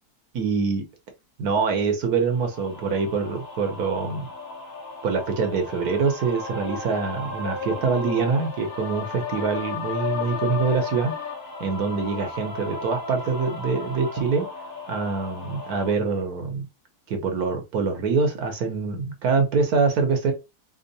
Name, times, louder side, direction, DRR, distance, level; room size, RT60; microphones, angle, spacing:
voice 1, 0.3-0.8 1.4-4.3 5.0-11.1 11.6-14.5 14.9-16.7 17.1-20.3, right 4 dB, 65° right, 1.4 m, -24 dB
sound 1, 2.4-15.9, left 4 dB, 35° left, 1.1 m, -34 dB
3.6 x 2.0 x 4.0 m
omnidirectional pair, 1.8 m